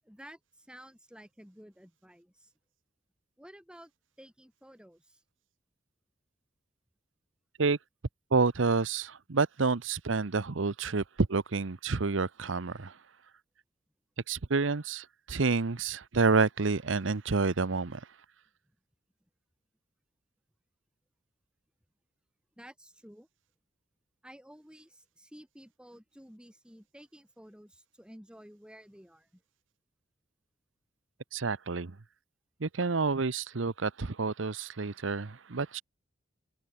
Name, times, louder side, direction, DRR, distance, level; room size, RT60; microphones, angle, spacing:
voice 1, 0.0-2.5 3.4-3.9 4.2-5.2 22.6-23.3 24.2-29.4, equal, 5° right, 5.1 m, -53 dB
voice 2, 8.3-11.0 11.3-12.9 14.3-18.0 31.3-31.9 32.6-35.8, right 4 dB, 90° right, 0.9 m, -29 dB
head